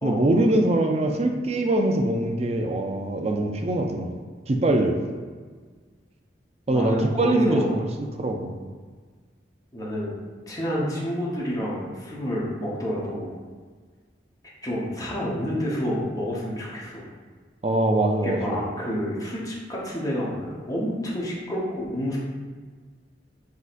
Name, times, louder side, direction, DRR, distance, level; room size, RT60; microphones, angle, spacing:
voice 1, 0.0-4.1 4.5-5.0 6.7-7.8 8.2-8.6 17.6-18.7, right 1 dB, 35° right, 4 dB, 0.4 m, -23 dB
voice 2, 6.7-7.8 9.7-10.1 10.5-13.3 14.6-17.0 18.2-22.2, equal, 20° left, -6 dB, 0.9 m, -29 dB
6.1 x 2.7 x 2.5 m, 1.5 s
head